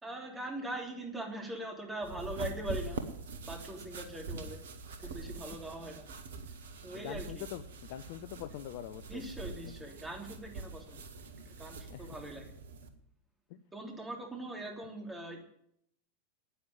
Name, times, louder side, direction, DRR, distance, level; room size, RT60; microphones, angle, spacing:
voice 1, 0.0-3.0 3.5-4.6 5.0-6.0 6.8-7.4 9.1-11.0 11.4-12.4 13.7-15.4, right 1 dB, 10° right, 2 dB, 3.3 m, -41 dB
sound 1, 2.0-12.9, right 4 dB, 60° right, 1.4 m, -44 dB
voice 2, 6.9-9.2 11.9-12.1 13.5-13.6, left 11 dB, 50° left, 11 dB, 0.6 m, -43 dB
10.0 x 9.5 x 9.7 m, 0.71 s
figure-of-eight pair, 90°, 0 cm